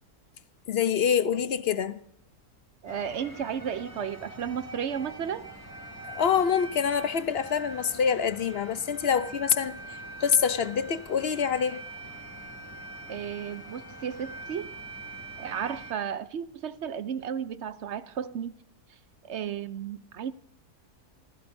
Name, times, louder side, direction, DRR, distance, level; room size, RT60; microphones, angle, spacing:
voice 1, 0.7-2.0 6.1-9.8 10.2-11.8, left 7 dB, 50° left, 0.8 m, -26 dB
voice 2, 2.8-5.5 13.1-14.7 15.4-18.5 19.3-20.3, right 8 dB, 55° right, 0.9 m, -33 dB
sound 1, 2.9-15.9, right 2 dB, 15° left, 3.1 m, -43 dB
28.0 x 16.0 x 2.7 m
omnidirectional pair, 1.6 m